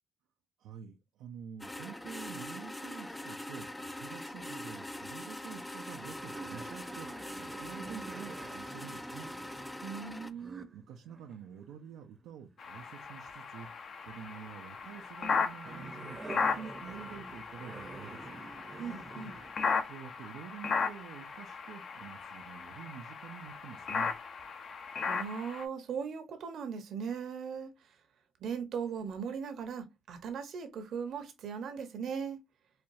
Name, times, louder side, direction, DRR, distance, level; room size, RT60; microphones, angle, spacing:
voice 1, 0.6-7.1 7.4-9.3 10.7-13.7 14.1-18.4 19.8-24.1, right 8 dB, 90° right, 0.5 m, -48 dB
sound 1, 1.6-10.3, left 1 dB, 10° left, 0.4 m, -43 dB
sound 2, 5.9-13.6 14.0-19.5 20.0-20.1, right 3 dB, 30° right, 0.7 m, -49 dB
voice 2, 9.8-10.7 18.8-19.4 25.1-27.7 28.4-32.4, right 6 dB, 70° right, 0.9 m, -38 dB
sound 3, 12.6-25.6, left 5 dB, 55° left, 0.7 m, -37 dB
4.3 x 2.3 x 2.6 m
cardioid pair, 90°, 0 cm